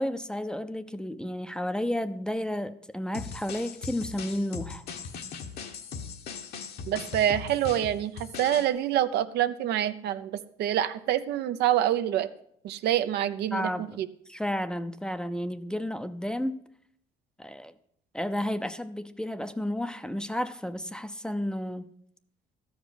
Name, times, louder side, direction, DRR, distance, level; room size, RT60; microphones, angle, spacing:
voice 1, 0.0-4.8 13.5-14.0 14.3-16.6 17.4-17.7 18.1-21.8, left 1 dB, 5° left, 0.5 m, -32 dB
sound 1, 3.1-8.7, left 5 dB, 70° left, 1.3 m, -39 dB
voice 2, 6.9-12.3 12.6-14.1, right 11 dB, 75° right, 0.7 m, -26 dB
13.0 x 5.1 x 8.0 m
cardioid pair, 110°, 17 cm